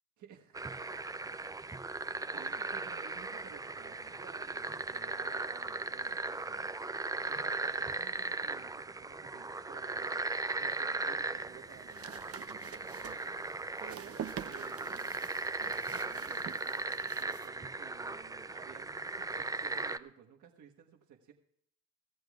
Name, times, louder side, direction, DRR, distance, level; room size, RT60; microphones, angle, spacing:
voice 1, 0.2-0.6 2.3-6.7 7.3-21.3, right 8 dB, 75° right, 2 dB, 1.4 m, -55 dB
sound 1, 0.5-20.0, right 3 dB, 10° right, 0.4 m, -38 dB
sound 2, 11.4-17.5, right 9 dB, 50° right, 0.7 m, -47 dB
23.5 x 14.0 x 2.4 m, 0.67 s
cardioid pair, 90°, 30 cm